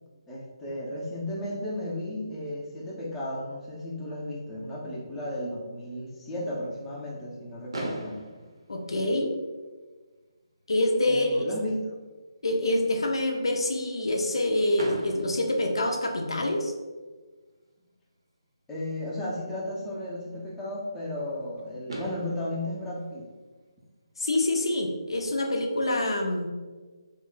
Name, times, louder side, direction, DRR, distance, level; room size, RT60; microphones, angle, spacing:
voice 1, 0.3-8.2 11.0-11.8 18.7-23.3, left 1 dB, 10° left, -6 dB, 0.5 m, -34 dB
Fireworks, 7.7-9.7 10.6-10.7 10.8-11.1 11.4-11.5 14.8-16.6 18.3-18.4 21.4-21.5 21.9-24.2, right 1 dB, 70° right, 0.6 m, -40 dB
voice 2, 8.7-9.4 10.7-11.4 12.4-16.7 24.2-26.5, left 1 dB, 70° left, 2 dB, 0.5 m, -26 dB
2.4 x 2.1 x 3.7 m, 1.3 s
figure-of-eight pair, 150°, 3 cm